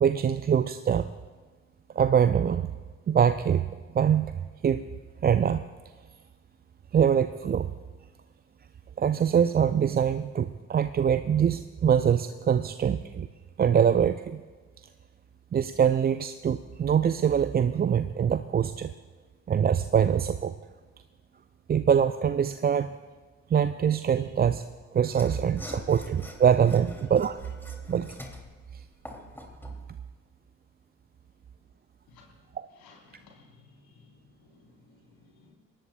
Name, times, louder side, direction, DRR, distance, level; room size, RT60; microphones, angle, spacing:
voice 1, 0.0-1.1 2.0-2.7 3.1-3.7 3.9-4.3 4.6-4.9 5.2-5.6 6.9-7.7 9.0-13.3 13.6-14.4 15.5-18.9 19.5-20.5 21.7-22.9 23.5-24.7 24.9-27.4 27.9-28.2 28.7-28.8, right 8 dB, 25° right, 12 dB, 0.5 m, -24 dB
Mechanisms / Sawing, 25.1-29.8, left 1 dB, 5° left, 2.9 m, -44 dB
voice 2, 32.7-35.5, left 4 dB, 65° left, -1 dB, 4.2 m, -58 dB
23.0 x 18.5 x 2.4 m, 1.4 s
figure-of-eight pair, 45°, 40 cm